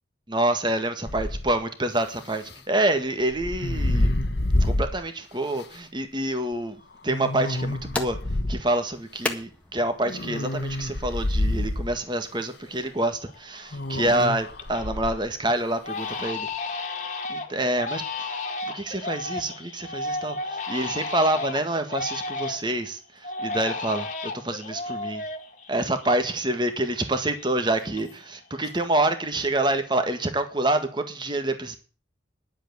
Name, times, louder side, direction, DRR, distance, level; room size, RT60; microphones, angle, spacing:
voice 1, 0.3-4.2 4.6-6.8 7.0-8.2 8.5-16.8 17.3-18.3 18.7-25.2 25.7-31.8, right 1 dB, 25° right, 1.7 m, -27 dB
sound 1, 1.0-1.6 3.3-5.0 5.6-5.7 7.1-8.6 10.1-12.0 13.7-15.2, left 1 dB, 60° left, 1.2 m, -27 dB
sound 2, 7.4-12.5, left 2 dB, 5° left, 1.6 m, -38 dB
Crying sobbing, 12.7-12.8 13.2-13.7 14.1-14.9 15.2-15.4 15.8-22.8 23.2-26.6 26.8-28.4 28.6-29.2, left 3 dB, 40° left, 1.9 m, -33 dB
10.5 x 8.1 x 9.5 m
head